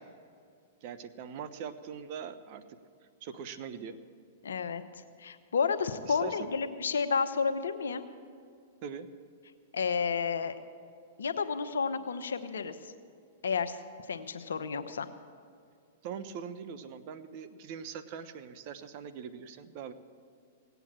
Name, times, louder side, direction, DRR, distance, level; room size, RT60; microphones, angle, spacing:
voice 1, 0.8-2.8 3.2-4.0 6.0-6.5 8.8-9.1 16.0-19.9, right 7 dB, 50° right, 11 dB, 0.9 m, -42 dB
voice 2, 4.4-4.8 5.2-8.0 9.7-10.6 11.2-12.9 13.4-13.8 14.1-15.1, left 5 dB, 85° left, 9 dB, 0.9 m, -31 dB
18.0 x 8.1 x 7.4 m, 2.3 s
hypercardioid pair, 115°, 0 cm